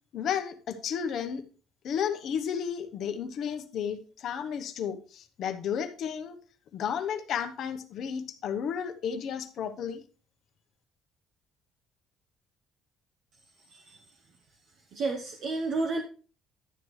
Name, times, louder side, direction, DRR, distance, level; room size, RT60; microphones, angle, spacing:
voice 1, 0.1-1.4 1.8-6.4 6.7-10.0, left 8 dB, 50° left, 8 dB, 0.9 m, -33 dB
voice 2, 14.9-16.0, right 3 dB, 50° right, 2 dB, 1.0 m, -31 dB
11.0 x 8.0 x 3.2 m, 0.38 s
cardioid pair, 150°, 0 cm